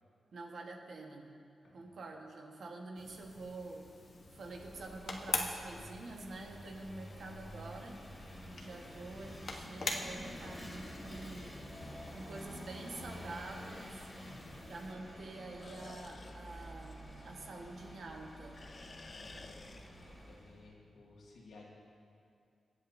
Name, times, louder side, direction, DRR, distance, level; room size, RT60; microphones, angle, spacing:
voice 1, 0.3-1.3 1.7-3.9 4.3-8.0 8.5-11.5 12.1-14.1 14.7-18.6, right 2 dB, 70° right, 1 dB, 1.3 m, -47 dB
sound 1, 3.0-14.9, left 3 dB, 55° left, 1.0 m, -45 dB
Vehicle / Engine, 4.1-20.7, equal, 15° left, 2.5 m, -50 dB
voice 2, 14.1-14.6 19.0-19.6 20.0-21.6, left 2 dB, 85° left, -3 dB, 2.0 m, -57 dB
sound 2, 15.6-18.2 18.5-20.4, left 3 dB, 40° left, 0.6 m, -54 dB
23.5 x 8.6 x 2.7 m, 2.4 s
wide cardioid pair, 105°, 0 cm